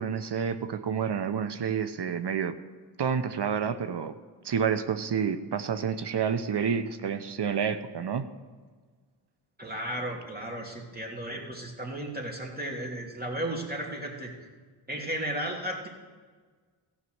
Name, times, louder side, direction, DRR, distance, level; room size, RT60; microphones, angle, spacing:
voice 1, 0.0-2.5 3.0-4.1 4.4-8.3, right 7 dB, 60° right, 10 dB, 0.8 m, -29 dB
voice 2, 9.6-14.3 14.9-15.9, right 1 dB, 20° right, 0 dB, 2.9 m, -34 dB
14.5 x 5.7 x 8.0 m, 1.5 s
cardioid pair, 55°, 48 cm